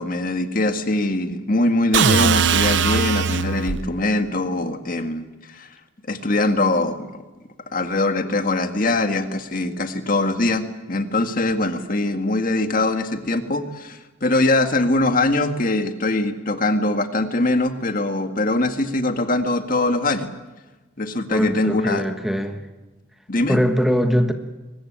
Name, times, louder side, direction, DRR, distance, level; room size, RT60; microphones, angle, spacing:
voice 1, 0.0-5.8 6.1-7.1 7.7-20.3 21.0-22.1 23.3-23.6, left 2 dB, 45° left, 7 dB, 1.8 m, -22 dB
sound 1, 1.9-3.9, right 6 dB, 60° right, 0.7 m, -19 dB
voice 2, 21.3-22.6 23.5-24.3, equal, ahead, 6 dB, 1.3 m, -21 dB
23.5 x 20.0 x 8.7 m, 1.1 s
head